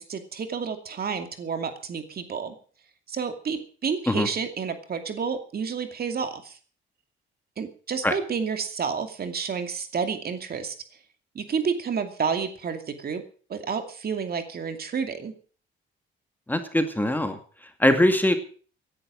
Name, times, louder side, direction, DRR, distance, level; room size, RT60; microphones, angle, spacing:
voice 1, 0.0-2.5 3.1-6.6 7.6-10.7 11.3-13.2 13.5-15.3, right 6 dB, 50° right, 7 dB, 2.5 m, -30 dB
voice 2, 16.5-17.4 17.8-18.3, left 1 dB, 10° left, 7 dB, 2.2 m, -21 dB
16.0 x 10.5 x 6.3 m, 0.42 s
cardioid pair, 90°, 20 cm